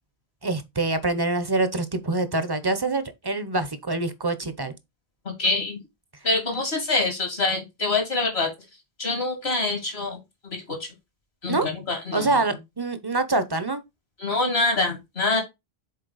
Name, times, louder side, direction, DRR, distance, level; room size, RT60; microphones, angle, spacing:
voice 1, 0.4-4.7 11.5-11.7 12.1-13.8, right 2 dB, 30° right, 0.6 m, -25 dB
voice 2, 5.2-5.8 6.2-8.5 9.0-10.9 11.4-12.4 14.2-15.4, left 3 dB, 85° left, 2.5 m, -25 dB
6.5 x 4.2 x 4.0 m
omnidirectional pair, 1.0 m